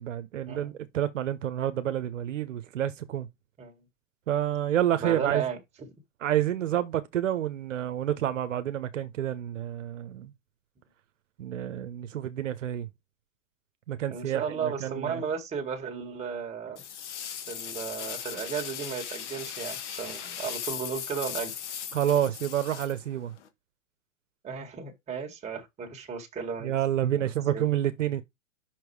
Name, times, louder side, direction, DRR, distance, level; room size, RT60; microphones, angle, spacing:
voice 1, 0.0-3.3 4.3-5.4 6.2-10.3 11.4-12.9 13.9-15.2 21.9-23.3 26.6-28.2, right 11 dB, 75° right, 0.9 m, -29 dB
voice 2, 5.0-5.9 14.1-16.8 17.5-21.5 24.4-26.8 27.2-27.7, right 6 dB, 15° right, 1.9 m, -34 dB
sound 1, 16.8-23.5, left 9 dB, 65° left, 1.5 m, -38 dB
5.9 x 4.6 x 4.7 m
hypercardioid pair, 130°, 38 cm